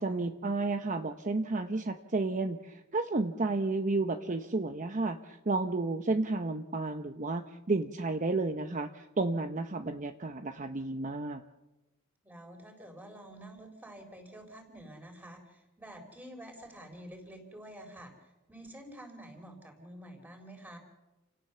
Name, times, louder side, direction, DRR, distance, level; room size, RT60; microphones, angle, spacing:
voice 1, 0.0-11.4, right 3 dB, 40° right, 7 dB, 0.9 m, -32 dB
voice 2, 12.2-20.8, right 1 dB, 10° right, 4 dB, 4.1 m, -49 dB
29.0 x 17.5 x 6.9 m, 1.0 s
head